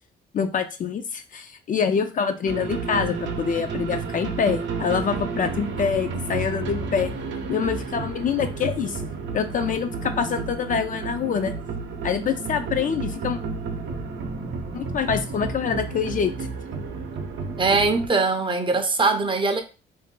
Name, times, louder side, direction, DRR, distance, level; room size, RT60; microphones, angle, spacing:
voice 1, 0.3-7.1 7.5-9.0 9.3-11.5 12.0-13.4 14.7-16.5, left 7 dB, 45° left, 0.4 m, -25 dB
sound 1, 2.4-18.1, right 4 dB, 70° right, 0.7 m, -31 dB
voice 2, 17.6-19.6, right 3 dB, 25° right, 0.5 m, -21 dB
2.6 x 2.1 x 3.7 m
cardioid pair, 90°, 20 cm